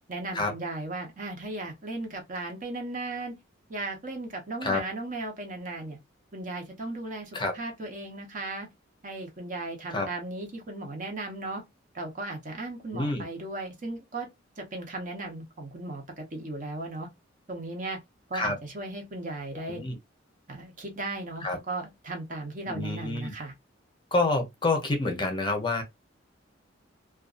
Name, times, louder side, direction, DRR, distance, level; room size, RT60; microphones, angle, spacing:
voice 1, 0.1-3.4 3.7-6.0 6.3-8.7 9.0-11.6 11.9-14.3 14.6-17.1 17.5-18.0 18.3-19.8 20.5-23.5, right 2 dB, 45° right, 0.9 m, -36 dB
voice 2, 12.9-13.2 18.3-18.6 19.7-20.0 21.4-21.6 22.7-23.3 24.1-25.8, left 2 dB, 25° left, 0.7 m, -28 dB
2.6 x 2.3 x 2.4 m
head